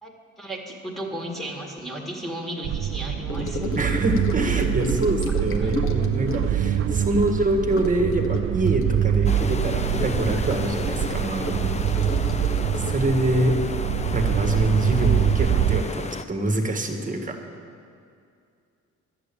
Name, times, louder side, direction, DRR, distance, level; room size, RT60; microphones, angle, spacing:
voice 1, 0.0-3.8 5.6-5.7 7.1-7.4, right 1 dB, ahead, -3 dB, 1.9 m, -34 dB
sound 1, 2.6-15.8, right 10 dB, 45° right, 0.4 m, -25 dB
Gurgling / Sink (filling or washing) / Trickle dribble, 3.3-15.0 15.2-15.5 15.8-15.9, left 2 dB, 45° left, 1.3 m, -34 dB
voice 2, 3.8-11.7 12.8-13.6 14.1-17.4, right 1 dB, 25° right, 4 dB, 1.6 m, -25 dB
sound 2, 9.2-16.2, left 4 dB, 20° left, 0.5 m, -33 dB
11.0 x 7.9 x 8.5 m, 2.4 s
cardioid pair, 90°, 30 cm